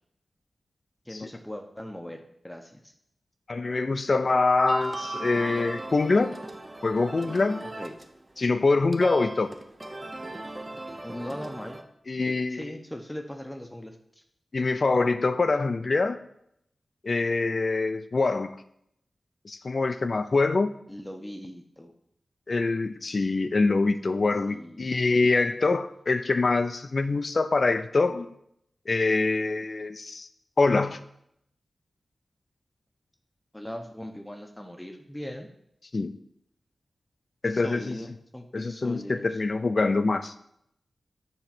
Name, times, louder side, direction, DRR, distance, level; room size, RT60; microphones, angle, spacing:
voice 1, 1.1-2.9 7.6-7.9 11.0-11.8 12.2-14.0 20.9-21.9 24.5-24.9 33.5-35.5 37.5-39.3, left 1 dB, 10° left, 5 dB, 0.8 m, -39 dB
voice 2, 3.5-6.3 6.8-7.7 8.4-9.5 12.1-12.7 14.5-16.2 17.0-18.5 19.4-20.7 22.5-28.3 28.9-30.3 30.6-31.0 35.9-36.2 37.4-38.0 38.5-40.3, left 3 dB, 55° left, 11 dB, 0.5 m, -24 dB
sound 1, 4.7-8.2 8.5-11.8, right 2 dB, 30° right, 0.7 m, -37 dB
7.0 x 3.2 x 5.8 m, 0.75 s
cardioid pair, 50°, 0 cm